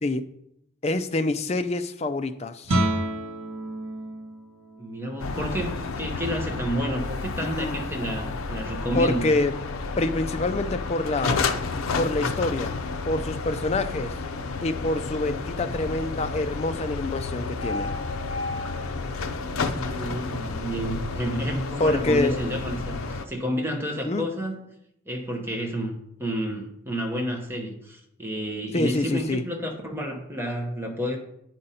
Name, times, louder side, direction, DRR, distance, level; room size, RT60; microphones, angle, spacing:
voice 1, 0.8-2.7 7.5-7.8 8.9-9.6 10.0-11.5 12.0-12.7 13.1-14.2 14.6-17.9 21.8-22.4 24.1-24.3 28.7-29.4, left 2 dB, 30° left, 9 dB, 0.4 m, -26 dB
Guitar, 2.6-8.2, right 1 dB, 80° right, 1.3 m, -32 dB
voice 2, 4.8-9.3 19.5-24.7 25.1-31.2, equal, 10° right, 1 dB, 0.9 m, -30 dB
sound 1, 5.2-23.3, left 4 dB, 75° left, 0.5 m, -31 dB
8.6 x 5.2 x 4.2 m, 0.78 s
head